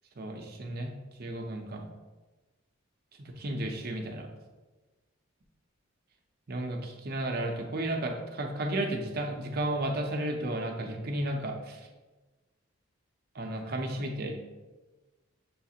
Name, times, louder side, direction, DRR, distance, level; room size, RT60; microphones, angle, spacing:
voice 1, 0.2-0.9 1.2-1.9 3.2-4.3 6.5-11.9 13.3-14.4, right 1 dB, 45° right, 2 dB, 0.5 m, -33 dB
7.0 x 2.4 x 2.8 m, 1.2 s
head